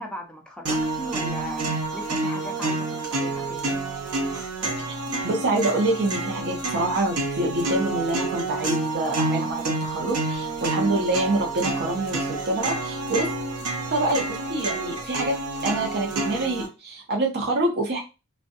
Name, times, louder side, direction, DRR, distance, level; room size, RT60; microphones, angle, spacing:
voice 1, 0.0-3.7, equal, 5° left, 1 dB, 0.5 m, -38 dB
sound 1, 0.7-16.7, right 2 dB, 90° right, 0.7 m, -28 dB
voice 2, 4.9-13.3 13.8-15.4 15.6-18.0, right 2 dB, 50° right, 0 dB, 0.6 m, -26 dB
2.5 x 2.1 x 2.6 m, 0.29 s
head